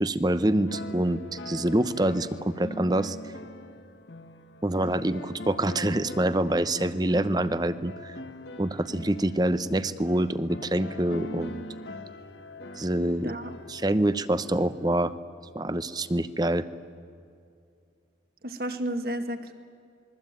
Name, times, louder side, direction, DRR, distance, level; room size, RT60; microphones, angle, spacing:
voice 1, 0.0-3.3 4.6-8.2 8.6-11.6 12.8-13.3 13.7-15.1 15.5-16.7, right 1 dB, 20° right, 13 dB, 0.8 m, -26 dB
sound 1, 0.7-15.2, left 1 dB, 75° left, 1.7 m, -42 dB
voice 2, 13.2-13.5 18.4-19.5, right 1 dB, 55° right, 6 dB, 2.1 m, -32 dB
27.5 x 22.0 x 9.1 m, 2.4 s
head